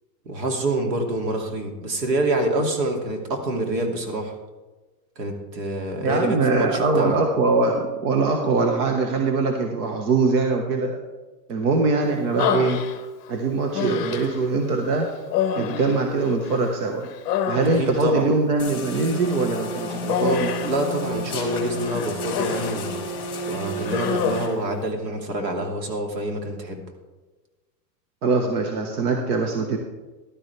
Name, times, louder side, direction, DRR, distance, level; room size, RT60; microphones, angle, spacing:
voice 1, 0.3-4.4 5.2-7.2 17.8-18.3 20.2-23.0 23.5-26.8, right 1 dB, 85° right, 2 dB, 2.8 m, -26 dB
voice 2, 6.0-11.0 11.5-12.8 13.3-15.1 15.6-17.1 17.5-20.5 28.2-29.8, right 3 dB, 65° right, 3 dB, 1.5 m, -22 dB
Human voice, 12.4-13.3 13.7-14.5 15.3-16.7 17.0-18.1 20.1-20.8 21.8-22.8 23.2-23.4 23.8-24.6, left 8 dB, 25° left, 0.9 m, -27 dB
sound 1, 18.6-24.5, left 1 dB, 10° left, 2.1 m, -31 dB
13.5 x 12.0 x 3.4 m, 1.2 s
supercardioid pair, 165°, 49 cm